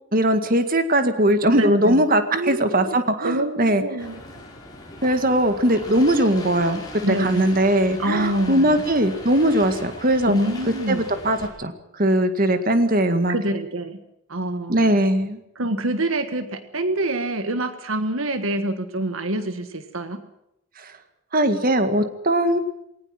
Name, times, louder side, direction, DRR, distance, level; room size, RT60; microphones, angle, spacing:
voice 1, 0.1-3.8 5.0-10.3 10.9-11.7 12.0-13.4 14.7-15.4 20.8-20.9 21.3-22.6, right 1 dB, 40° right, 8 dB, 2.0 m, -20 dB
voice 2, 1.6-2.0 2.3-3.0 3.2-4.2 7.0-7.4 8.0-8.8 10.3-11.0 13.3-14.0 14.3-15.0 15.5-20.2, right 1 dB, 70° right, 9 dB, 1.6 m, -26 dB
sound 1, 4.0-11.5, left 2 dB, 20° left, 5.5 m, -39 dB
20.5 x 19.0 x 7.6 m, 0.82 s
head